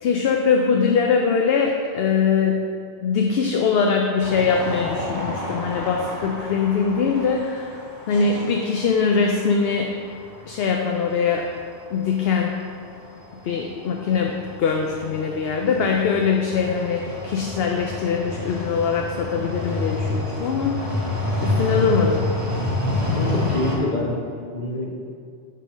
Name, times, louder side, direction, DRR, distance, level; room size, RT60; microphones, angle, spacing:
voice 1, 0.0-2.7 3.0-7.8 8.1-9.9 10.5-11.5 11.9-12.6 13.4-21.1 21.4-22.3, left 5 dB, 65° left, 2 dB, 0.7 m, -22 dB
sound 1, 4.2-23.8, left 2 dB, 15° right, 1.4 m, -29 dB
voice 2, 22.9-25.0, left 1 dB, 40° left, -2 dB, 1.2 m, -27 dB
5.6 x 5.3 x 5.2 m, 2.3 s
omnidirectional pair, 1.2 m